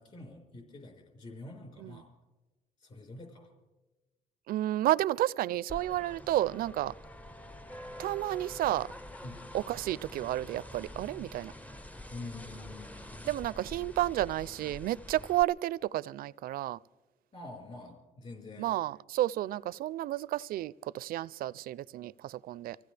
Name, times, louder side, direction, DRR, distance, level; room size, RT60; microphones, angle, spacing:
voice 1, 0.0-2.1 2.8-3.5 9.2-9.4 12.1-13.3 17.3-18.8, left 2 dB, 40° left, 4.9 m, -46 dB
voice 2, 4.5-6.9 8.0-8.9 9.5-11.5 13.3-16.8 18.6-22.8, right 14 dB, 60° right, 0.4 m, -31 dB
sound 1, 5.7-15.4, left 1 dB, 10° left, 0.5 m, -46 dB
26.0 x 15.5 x 3.4 m
cardioid pair, 110°, 17 cm